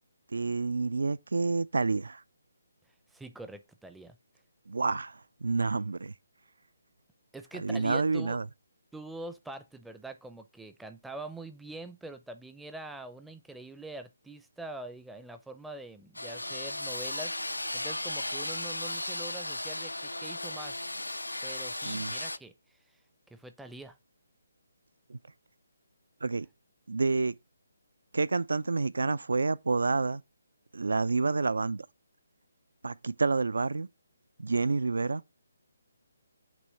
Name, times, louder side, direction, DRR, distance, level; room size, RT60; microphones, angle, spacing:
voice 1, 0.3-2.2 4.7-6.1 7.6-8.5 21.8-22.1 25.1-25.2 26.2-26.5 26.9-27.3 28.1-30.2 30.7-31.9 32.8-33.9 34.4-35.2, right 4 dB, 70° right, 0.4 m, -29 dB
voice 2, 3.1-4.2 7.3-8.4 8.9-17.4 17.7-20.8 21.4-22.8 23.3-24.0, right 2 dB, 5° right, 0.5 m, -44 dB
sound 1, 16.1-22.4, left 1 dB, 85° left, 0.3 m, -35 dB
6.1 x 3.1 x 5.5 m
figure-of-eight pair, 145°, 0 cm